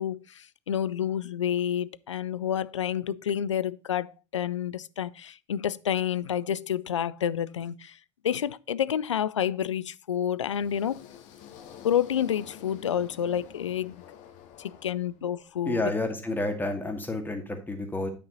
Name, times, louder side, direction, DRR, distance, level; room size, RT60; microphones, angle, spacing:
voice 1, 0.0-8.0 8.2-11.0 11.8-14.0 14.6-15.8, left 9 dB, 80° left, 0.4 m, -29 dB
sound 1, 10.4-15.5, left 8 dB, 55° left, 1.5 m, -49 dB
voice 2, 15.7-18.1, left 2 dB, 10° left, 2.1 m, -30 dB
9.3 x 5.4 x 3.9 m
figure-of-eight pair, 65°, 15 cm